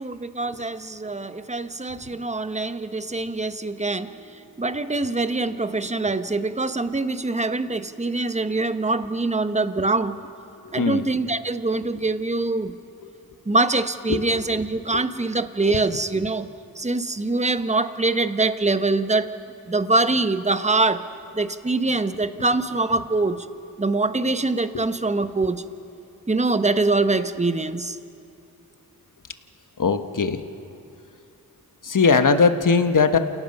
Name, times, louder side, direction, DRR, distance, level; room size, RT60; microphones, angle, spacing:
voice 1, 0.0-4.1 4.6-10.2 10.7-12.7 13.5-16.5 16.8-19.3 19.7-21.0 21.4-23.4 23.8-25.6 26.3-28.0, right 3 dB, 15° right, 11 dB, 1.1 m, -24 dB
voice 2, 29.8-30.4 31.8-33.2, left 5 dB, 50° left, 8 dB, 1.4 m, -19 dB
28.5 x 17.5 x 5.5 m, 2.6 s
cardioid pair, 40°, 39 cm